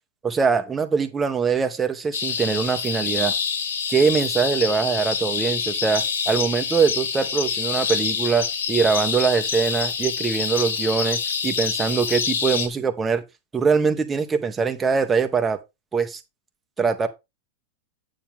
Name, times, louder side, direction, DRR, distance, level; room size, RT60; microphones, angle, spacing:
voice 1, 0.2-3.3 3.9-13.2 13.5-15.6 15.9-16.2 16.8-17.1, right 5 dB, 20° right, 1.5 m, -22 dB
sound 1, 2.1-12.7, left 6 dB, 85° left, 1.5 m, -26 dB
9.0 x 7.1 x 3.7 m
hypercardioid pair, 115°, 0 cm